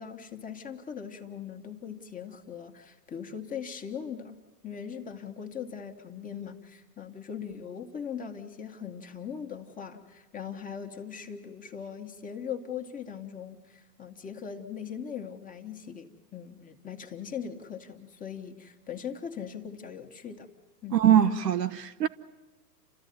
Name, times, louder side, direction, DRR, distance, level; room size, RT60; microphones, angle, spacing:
voice 1, 0.0-20.5 20.8-21.0, left 7 dB, 15° left, 1.6 m, -40 dB
voice 2, 20.9-22.1, right 10 dB, 75° right, 1.2 m, -22 dB
30.0 x 13.5 x 9.4 m
hypercardioid pair, 120°, 49 cm